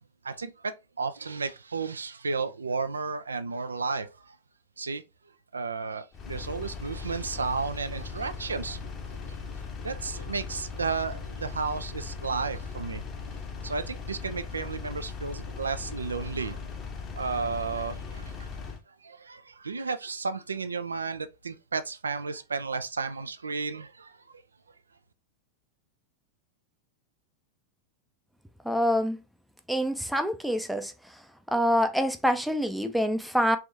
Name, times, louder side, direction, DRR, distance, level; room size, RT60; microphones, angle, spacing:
voice 1, 0.2-4.4 4.8-5.0 5.5-9.4 9.8-13.0 13.6-16.6 17.2-18.5 18.9-24.4, right 4 dB, 75° right, 0.4 m, -33 dB
Engine, 6.1-18.8, left 5 dB, 30° left, 0.9 m, -38 dB
voice 2, 28.6-29.2 29.7-30.9 31.5-33.6, equal, ahead, 0.5 m, -26 dB
3.5 x 3.4 x 2.7 m
figure-of-eight pair, 90°, 0 cm